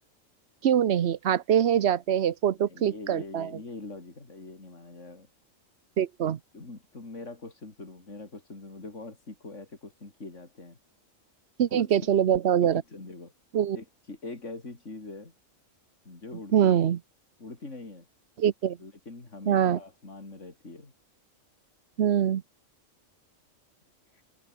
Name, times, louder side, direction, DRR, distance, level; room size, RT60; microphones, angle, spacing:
voice 1, 0.6-3.5 6.0-6.4 11.6-12.8 13.5-13.8 16.5-17.0 18.4-18.8 19.5-19.8 22.0-22.4, right 9 dB, 60° right, 1.0 m, -23 dB
voice 2, 2.6-5.3 6.5-10.8 11.7-12.1 12.6-13.3 13.7-15.3 16.0-16.8 17.4-18.1 18.8-20.9 24.1-24.2, left 3 dB, 65° left, 4.3 m, -43 dB
omnidirectional pair, 1.4 m